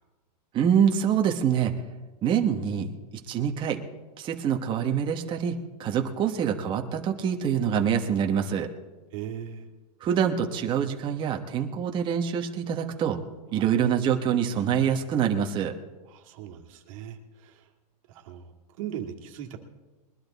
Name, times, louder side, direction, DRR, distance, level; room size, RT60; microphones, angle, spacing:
voice 1, 0.5-1.7 2.2-2.9 3.3-3.8 4.2-8.7 10.0-13.2 13.5-15.8, right 8 dB, 25° right, 4 dB, 1.1 m, -25 dB
voice 2, 9.1-9.7 13.5-13.7 16.1-17.7 18.1-19.6, right 9 dB, 55° right, 3 dB, 1.9 m, -39 dB
21.5 x 11.5 x 4.1 m, 1.2 s
supercardioid pair, 145°, 21 cm